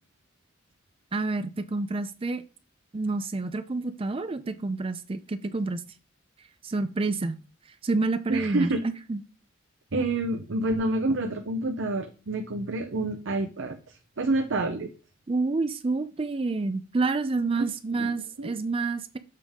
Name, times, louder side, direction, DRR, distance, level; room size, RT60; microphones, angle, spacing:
voice 1, 1.1-2.4 2.9-5.8 6.6-7.4 7.8-9.2 15.3-19.2, right 3 dB, 30° right, 11 dB, 0.4 m, -28 dB
voice 2, 8.3-8.8 9.9-13.8 14.2-14.9 17.6-18.5, right 2 dB, 70° right, 5 dB, 0.7 m, -28 dB
7.5 x 3.6 x 5.2 m, 0.34 s
head